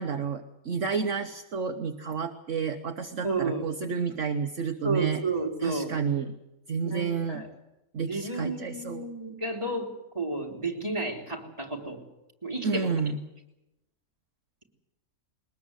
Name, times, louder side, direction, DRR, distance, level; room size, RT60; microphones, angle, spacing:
voice 1, 0.0-5.2 5.6-6.3 6.7-7.4 7.9-9.1 12.6-13.2, right 5 dB, 55° right, 5 dB, 1.4 m, -30 dB
voice 2, 3.2-3.6 4.8-5.9 6.8-7.5 8.1-12.0 12.4-12.9, right 3 dB, 20° right, 0 dB, 3.4 m, -31 dB
22.0 x 20.0 x 8.0 m, 0.92 s
omnidirectional pair, 1.6 m